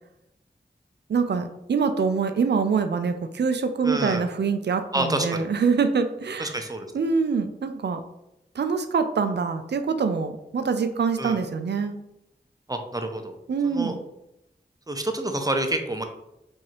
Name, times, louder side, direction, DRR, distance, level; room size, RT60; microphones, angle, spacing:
voice 1, 1.1-6.6 6.9-8.0 8.5-12.0 13.5-14.0, right 5 dB, 75° right, 8 dB, 0.4 m, -25 dB
voice 2, 3.8-4.3 4.9-5.4 6.4-6.9 11.2-11.4 12.7-13.3 13.6-13.9 14.9-16.0, right 1 dB, 20° right, 5 dB, 0.6 m, -28 dB
4.7 x 2.7 x 2.9 m, 0.86 s
wide cardioid pair, 50°, 18 cm